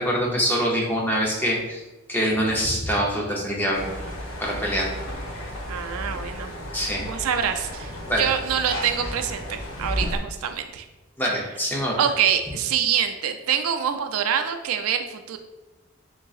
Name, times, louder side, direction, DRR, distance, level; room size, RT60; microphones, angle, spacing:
voice 1, 0.0-1.8 2.1-3.9 4.4-4.9 6.7-7.0 8.1-8.3 11.2-12.0, equal, 10° left, -3 dB, 0.6 m, -24 dB
sound 1, 3.7-10.2, left 1 dB, 85° left, 0.8 m, -33 dB
voice 2, 5.7-6.5 7.0-10.9 12.0-15.4, right 8 dB, 85° right, 7 dB, 0.4 m, -25 dB
3.8 x 3.6 x 2.4 m, 1.1 s
head